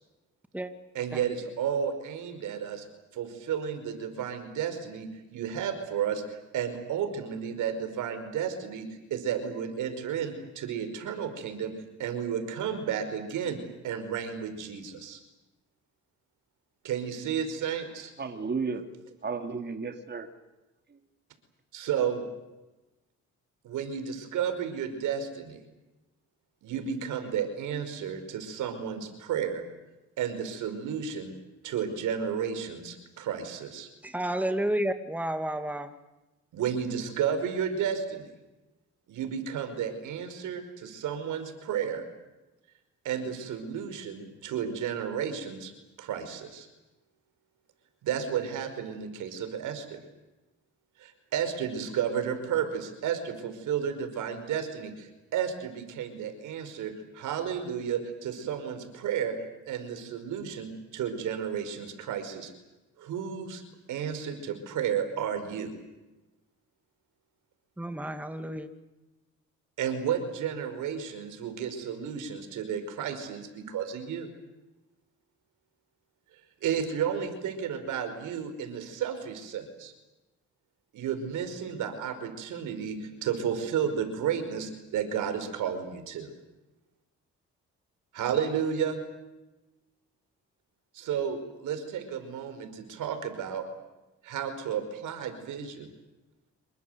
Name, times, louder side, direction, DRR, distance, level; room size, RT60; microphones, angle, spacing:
voice 1, 0.9-2.9 3.1-6.2 6.5-11.7 12.0-13.6 13.8-15.2 16.8-18.1 21.7-22.2 23.6-25.6 26.6-29.6 30.2-31.3 31.6-33.9 36.5-38.3 39.1-42.0 43.0-45.7 46.0-46.7 48.0-50.0 51.0-59.3 59.7-62.5 63.0-63.6 63.9-65.7 69.8-74.3 76.6-79.9 80.9-86.3 88.1-89.0 90.9-93.6 94.2-95.9, right 8 dB, 85° right, 9 dB, 5.3 m, -32 dB
voice 2, 18.2-20.2 20.9-21.0, right 4 dB, 35° right, 5 dB, 3.1 m, -34 dB
voice 3, 34.0-35.9 67.8-68.7, right 1 dB, 5° right, 7 dB, 2.4 m, -31 dB
27.5 x 23.0 x 8.2 m, 1.0 s
cardioid pair, 90°, 30 cm